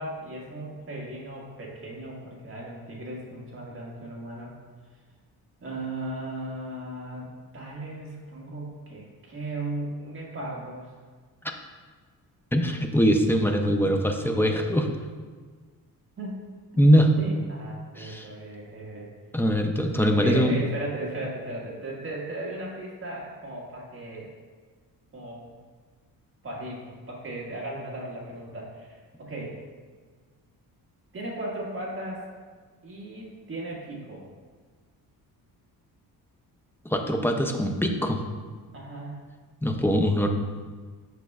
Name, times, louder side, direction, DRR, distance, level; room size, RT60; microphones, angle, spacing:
voice 1, 0.0-4.5 5.6-10.9 16.2-16.4 17.2-19.1 20.1-24.3 25.1-25.5 26.4-29.6 31.1-32.2 32.8-34.2 38.7-39.3, right 2 dB, 30° right, -4 dB, 1.6 m, -36 dB
voice 2, 12.5-14.9 16.8-17.1 18.0-18.3 19.3-20.7 36.8-38.2 39.6-40.3, equal, 5° left, 3 dB, 0.4 m, -22 dB
8.3 x 6.0 x 2.3 m, 1.5 s
cardioid pair, 125°, 38 cm